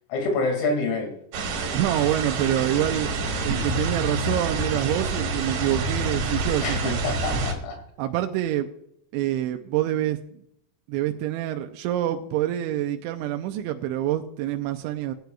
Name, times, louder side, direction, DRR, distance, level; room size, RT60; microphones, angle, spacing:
voice 1, 0.1-1.1 6.6-7.8, left 3 dB, 80° left, 3 dB, 4.9 m, -27 dB
sound 1, 1.3-7.5, right 3 dB, 60° right, 3.0 m, -27 dB
voice 2, 1.7-3.1 3.4-7.0 8.0-8.7 9.1-10.4 10.9-15.1, right 13 dB, 90° right, 6 dB, 2.6 m, -26 dB
18.5 x 9.2 x 2.3 m, 0.71 s
omnidirectional pair, 5.9 m